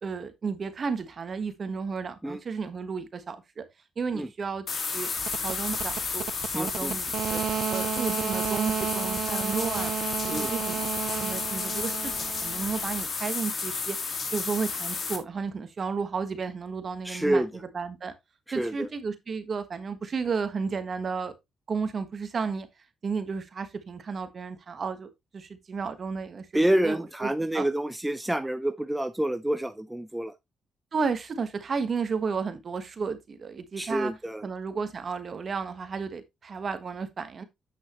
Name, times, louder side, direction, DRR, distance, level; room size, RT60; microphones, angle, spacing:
voice 1, 0.0-3.6 4.0-4.6 4.9-5.1 5.4-6.3 6.5-9.9 10.3-14.0 14.3-17.4 17.7-18.1 18.5-21.3 21.7-22.7 23.0-27.6 30.9-34.1 34.4-37.4, right 5 dB, 45° right, 1.3 m, -33 dB
sound 1, 4.7-15.2, left 4 dB, 45° left, 2.0 m, -32 dB
sound 2, 5.2-13.1, right 9 dB, 65° right, 0.5 m, -33 dB
voice 2, 6.5-7.0 10.3-10.5 17.0-17.5 18.5-18.9 26.5-30.3 33.8-34.5, right 1 dB, 5° right, 0.6 m, -28 dB
8.1 x 6.2 x 3.0 m
cardioid pair, 90°, 0 cm